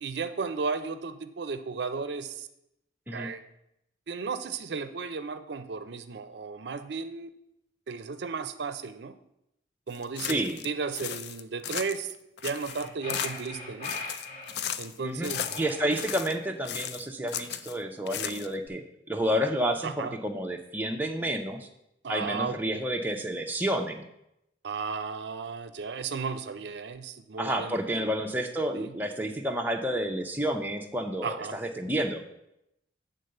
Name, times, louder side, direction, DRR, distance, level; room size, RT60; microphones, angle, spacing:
voice 1, 0.0-2.5 3.1-3.4 4.1-7.3 7.9-9.1 9.9-12.1 12.4-13.9 14.8-15.4 19.8-20.2 22.0-22.8 24.6-28.1 28.8-28.9 31.2-31.6, right 5 dB, 65° right, 10 dB, 0.5 m, -34 dB
sound 1, 9.9-10.7 10.9-12.1 12.4-13.5 13.8-15.0 15.2-16.4 16.6-17.8 18.1-18.7, left 9 dB, 60° left, 0.4 m, -36 dB
voice 2, 10.3-10.6 15.0-15.3 15.6-21.7 22.1-24.0 27.4-32.3, right 1 dB, 10° right, 2 dB, 0.5 m, -30 dB
sound 2, 12.4-14.6 15.2-16.5, left 2 dB, 40° left, 1.4 m, -40 dB
8.1 x 3.8 x 6.5 m, 0.82 s
head